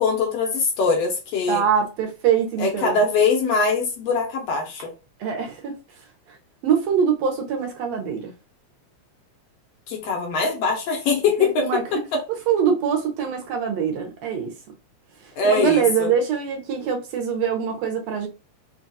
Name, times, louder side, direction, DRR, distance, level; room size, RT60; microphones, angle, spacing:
voice 1, 0.0-1.6 2.6-4.9 9.9-12.2 15.4-16.2, left 4 dB, 70° left, 1.7 m, -22 dB
voice 2, 1.5-3.0 5.2-5.7 6.6-8.3 11.4-12.0 12.5-14.5 15.4-18.3, right 7 dB, 75° right, 1.9 m, -23 dB
4.6 x 2.3 x 2.6 m
omnidirectional pair, 3.3 m